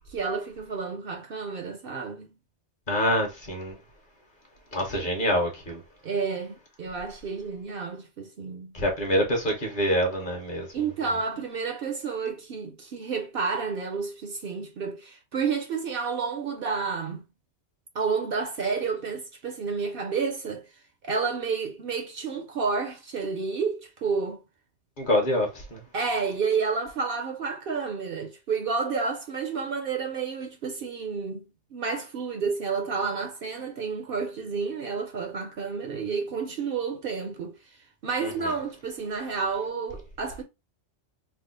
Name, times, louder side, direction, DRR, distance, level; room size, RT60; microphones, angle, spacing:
voice 1, 0.1-2.3 6.0-8.7 10.7-17.2 17.9-20.6 21.0-24.4 25.9-31.4 31.7-37.6 38.0-40.4, right 5 dB, 60° right, 0.7 m, -30 dB
voice 2, 2.9-3.8 4.7-5.8 8.7-10.8 25.0-25.8 38.2-38.5, equal, 45° left, 1.1 m, -26 dB
3.5 x 2.0 x 3.7 m
omnidirectional pair, 1.2 m